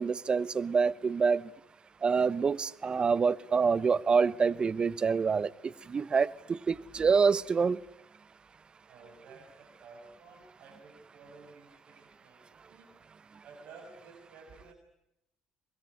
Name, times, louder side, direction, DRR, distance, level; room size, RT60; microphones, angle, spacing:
voice 1, 0.0-1.4 2.0-7.8, right 5 dB, 40° right, 1.0 m, -27 dB
voice 2, 8.9-13.0 13.4-14.7, right 4 dB, 65° right, 6.2 m, -53 dB
24.5 x 21.5 x 9.6 m
hypercardioid pair, 60°, 3 cm